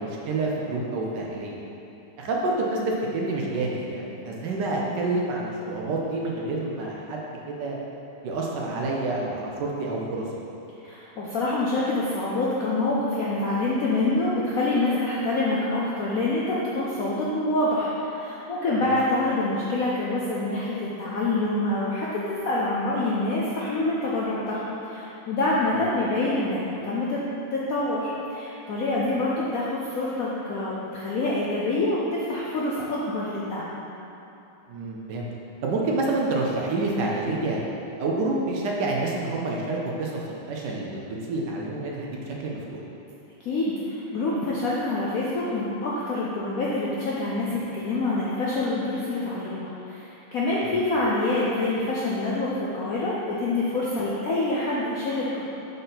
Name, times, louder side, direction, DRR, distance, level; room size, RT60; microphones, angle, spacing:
voice 1, 0.0-1.6 2.2-7.8 8.2-10.4 18.8-18.9 34.7-35.3 35.6-37.6 38.0-42.8, right 2 dB, 65° right, -2 dB, 1.2 m, -28 dB
voice 2, 10.8-24.6 24.9-27.2 27.5-33.7 43.4-55.4, left 2 dB, 75° left, -6 dB, 0.8 m, -26 dB
5.9 x 5.3 x 4.0 m, 2.9 s
omnidirectional pair, 2.4 m